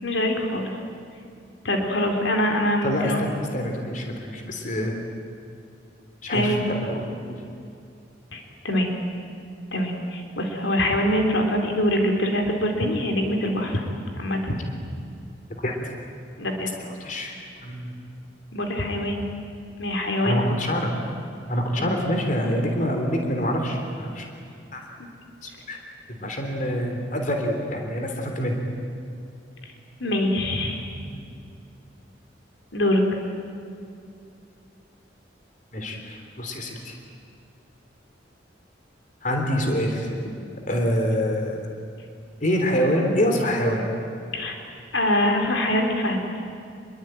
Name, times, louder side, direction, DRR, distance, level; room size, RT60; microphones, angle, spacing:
voice 1, 0.0-0.7 1.6-3.3 6.3-6.6 8.3-8.9 9.7-13.8 14.2-14.6 16.4-16.7 18.5-19.3 19.8-20.5 21.8-21.9 29.6-29.7 30.0-30.8 32.7-33.0 44.3-44.6 44.9-46.2, left 1 dB, 85° left, 2 dB, 3.8 m, -24 dB
voice 2, 2.8-4.9 6.2-7.0 15.6-15.7 16.8-17.3 17.6-17.9 20.2-20.9 21.5-24.3 24.7-24.8 25.4-25.8 26.1-28.6 31.1-31.2 35.7-36.9 39.2-40.2 40.7-41.7 42.4-43.9, equal, 45° left, 3 dB, 3.5 m, -26 dB
28.0 x 22.0 x 9.1 m, 2.5 s
head